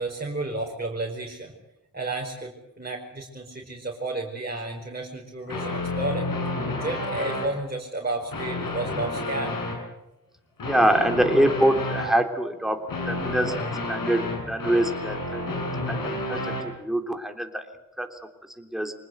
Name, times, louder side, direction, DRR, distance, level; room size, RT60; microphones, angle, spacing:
voice 1, 0.0-1.5 1.9-6.3 6.7-9.6, right 2 dB, 30° right, -2 dB, 5.0 m, -32 dB
sound 1, 5.5-7.5 8.2-9.8 10.6-12.1 12.9-16.6, left 2 dB, 85° left, 6.6 m, -30 dB
voice 2, 10.6-12.8 13.0-15.5 15.9-17.6 18.0-18.2 18.6-18.9, right 1 dB, ahead, 5 dB, 3.4 m, -25 dB
24.5 x 20.0 x 8.0 m, 0.92 s
cardioid pair, 65°, 33 cm